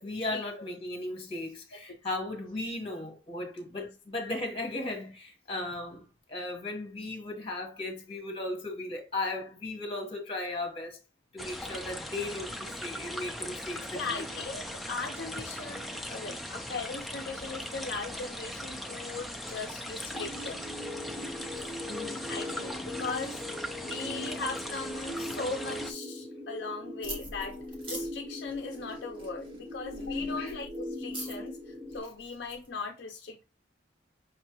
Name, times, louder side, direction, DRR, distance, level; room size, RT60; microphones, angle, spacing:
voice 1, 0.0-11.0 11.3-14.2 21.9-22.2 30.2-30.5, left 2 dB, 30° left, 1.2 m, -36 dB
sound 1, 11.4-25.9, equal, ahead, 0.4 m, -39 dB
voice 2, 13.9-20.6 22.3-23.4 23.8-33.4, left 4 dB, 55° left, 0.5 m, -39 dB
sound 2, 20.1-32.0, left 1 dB, 45° right, 1.8 m, -40 dB
sound 3, 27.0-32.7, right 1 dB, 25° right, 1.1 m, -45 dB
5.4 x 3.2 x 2.9 m
head